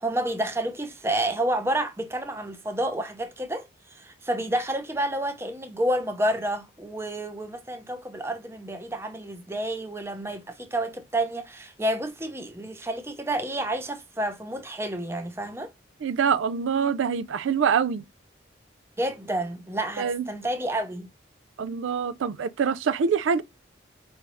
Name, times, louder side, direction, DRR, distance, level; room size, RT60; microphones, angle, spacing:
voice 1, 0.0-3.7 3.9-15.7 19.0-21.1, right 1 dB, 15° right, 0.5 m, -29 dB
voice 2, 16.0-18.0 20.0-20.2 21.6-23.4, right 6 dB, 85° right, 0.4 m, -25 dB
4.8 x 2.6 x 3.0 m
head